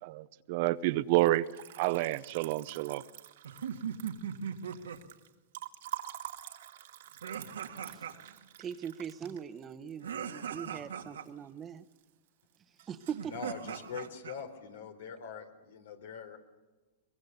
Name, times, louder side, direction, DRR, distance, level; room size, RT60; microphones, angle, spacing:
voice 1, 0.0-1.5 1.8-3.0, right 17 dB, 55° right, 0.8 m, -29 dB
Liquid, 1.1-11.3 11.6-12.3 12.5-13.3, right 13 dB, 70° right, 2.1 m, -47 dB
sound 1, 3.4-5.0 7.2-8.4 10.0-11.2 13.1-14.4, right 8 dB, 90° right, 1.9 m, -39 dB
voice 2, 8.6-10.1 10.3-11.8 12.9-13.3, right 8 dB, 25° right, 1.1 m, -40 dB
voice 3, 13.3-16.6, left 5 dB, 80° left, 3.9 m, -43 dB
24.0 x 21.5 x 6.8 m
hypercardioid pair, 120°, 0 cm